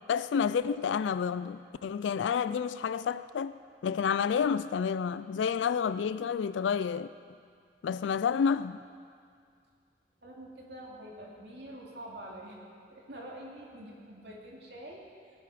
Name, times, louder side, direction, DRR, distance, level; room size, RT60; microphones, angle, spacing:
voice 1, 0.1-3.5 3.8-7.1 7.8-8.8, left 6 dB, 90° left, 0.3 m, -29 dB
voice 2, 10.2-12.6 12.9-15.1, right 1 dB, 70° right, 2.6 m, -46 dB
18.0 x 11.5 x 4.9 m
head